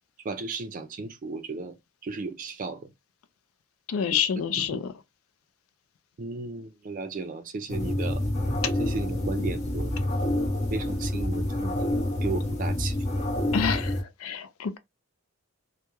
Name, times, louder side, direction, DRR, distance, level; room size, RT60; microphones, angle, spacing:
voice 1, 0.2-1.7 2.0-2.9 4.1-4.2 4.5-4.8 6.2-8.2 8.8-9.9 10.7-11.7 12.2-13.0, right 3 dB, 40° right, 0.4 m, -35 dB
voice 2, 3.9-4.9 13.5-14.8, left 7 dB, 80° left, 0.4 m, -28 dB
sound 1, 7.7-14.0, left 1 dB, 35° left, 0.6 m, -28 dB
2.3 x 2.1 x 2.9 m
head